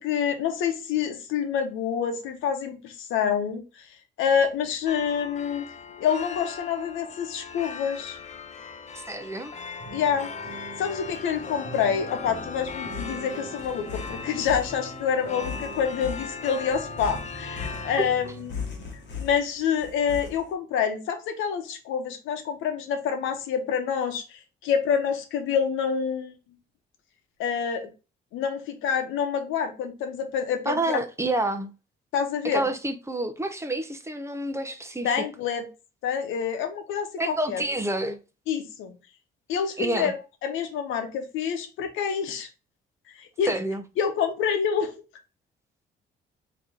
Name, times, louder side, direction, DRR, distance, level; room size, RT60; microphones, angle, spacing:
voice 1, 0.0-3.9 4.2-5.6 6.0-8.2 9.9-10.3 10.8-18.6 19.2-26.4 27.4-27.9 28.3-31.0 32.1-32.7 35.0-35.7 36.0-37.6 38.5-38.9 39.5-40.1 40.4-42.5 43.1-43.5 44.0-44.9, left 7 dB, 90° left, 0.8 m, -27 dB
sound 1, 4.3-20.5, left 6 dB, 65° left, 1.2 m, -42 dB
sound 2, 4.9-18.0, left 5 dB, 35° left, 0.5 m, -38 dB
voice 2, 9.1-9.5 18.0-18.1 30.7-31.7 32.4-35.2 37.2-38.2 39.8-40.1 43.5-43.8, right 1 dB, 15° right, 0.7 m, -28 dB
sound 3, 9.8-19.3, right 6 dB, 60° right, 1.3 m, -45 dB
3.6 x 2.8 x 3.7 m
cardioid pair, 90°, 20 cm